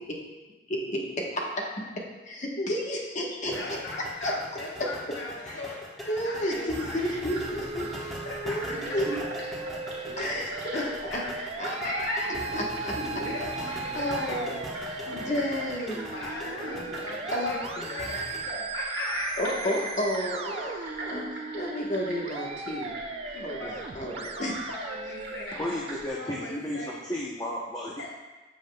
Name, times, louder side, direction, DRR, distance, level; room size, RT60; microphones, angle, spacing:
voice 1, 0.7-1.6 2.0-3.6 4.2-4.3 4.8-4.9 5.5-5.6 6.1-8.2 8.4-9.1 10.2-10.8 11.1-11.2 11.6-13.0 13.9-14.6 15.1-16.0 17.3-17.9 19.4-22.9 23.3-24.6, left 1 dB, 40° left, -1 dB, 1.1 m, -31 dB
sound 1, 3.4-18.4, equal, ahead, 1.1 m, -41 dB
voice 2, 3.5-7.1 8.2-8.7 9.1-9.2 10.7-11.3 11.7-11.9 13.2-14.6 15.0-15.6 16.1-19.4 23.5-23.7 24.3-27.0 28.0-28.1, left 2 dB, 70° left, -4 dB, 0.9 m, -39 dB
sound 2, 6.3-26.1, right 1 dB, 60° right, 1.5 m, -41 dB
Musical instrument, 7.5-25.4, right 3 dB, 35° right, 0.3 m, -38 dB
voice 3, 25.5-28.1, left 1 dB, 20° left, -4 dB, 0.7 m, -33 dB
8.6 x 7.3 x 2.2 m, 1.2 s
head